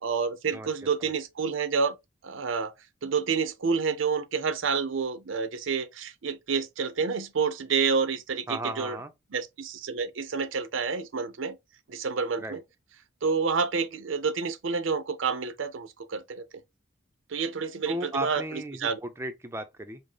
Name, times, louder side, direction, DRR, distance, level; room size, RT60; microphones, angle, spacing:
voice 1, 0.0-2.0 2.2-2.7 3.0-9.0 9.3-11.6 11.9-12.6 13.2-16.5 17.3-19.0, right 5 dB, 85° right, 0.6 m, -29 dB
voice 2, 8.5-9.1 12.4-12.6 17.9-20.0, right 1 dB, 15° right, 0.5 m, -35 dB
5.1 x 2.0 x 3.8 m
head